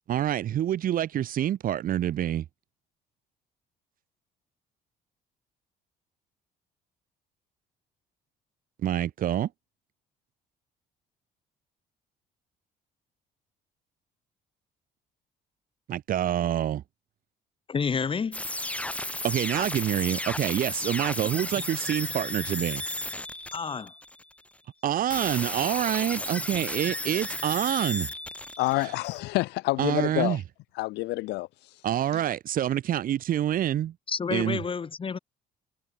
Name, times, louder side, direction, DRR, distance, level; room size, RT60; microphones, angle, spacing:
voice 1, 0.1-2.4 8.8-9.5 15.9-16.8 19.2-22.8 24.8-28.1 28.8-28.9 29.8-30.4 31.8-33.9 34.3-34.6, right 11 dB, 55° right, 1.5 m, -27 dB
voice 2, 17.7-18.4 23.5-23.9 34.1-35.2, left 5 dB, 30° left, 2.7 m, -29 dB
sound 1, 18.3-24.4 25.1-29.2, left 1 dB, 10° left, 4.6 m, -34 dB
voice 3, 28.6-30.4 30.8-31.5, left 20 dB, 85° left, 1.0 m, -27 dB
cardioid pair, 110°, 17 cm